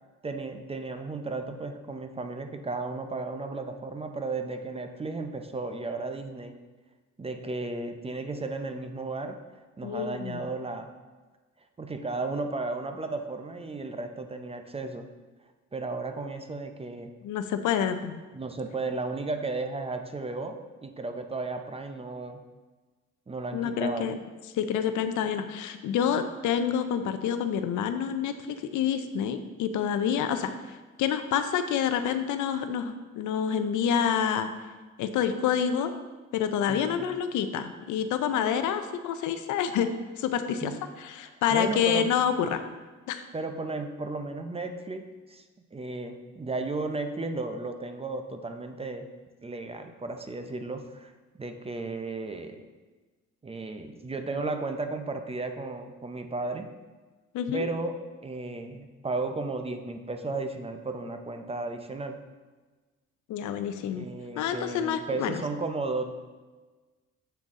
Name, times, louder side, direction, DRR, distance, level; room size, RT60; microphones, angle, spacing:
voice 1, 0.2-6.6 7.2-9.4 9.8-10.9 11.8-15.1 15.7-17.1 18.3-22.4 23.3-24.1 36.7-37.0 40.6-40.8 41.5-42.1 43.3-45.4 45.7-49.1 49.4-51.1 51.4-52.6 53.4-56.7 57.5-58.0 58.2-62.2 63.9-66.2, right 3 dB, 20° right, 6 dB, 0.5 m, -34 dB
voice 2, 9.8-10.5 17.2-18.2 23.5-24.2 24.5-34.5 35.0-35.9 36.3-39.9 40.2-40.7 41.0-42.6 43.1-43.2 57.3-57.6 63.3-64.1 64.4-65.4, left 8 dB, 80° left, 9 dB, 0.5 m, -28 dB
7.7 x 3.9 x 3.6 m, 1.3 s
cardioid pair, 90°, 30 cm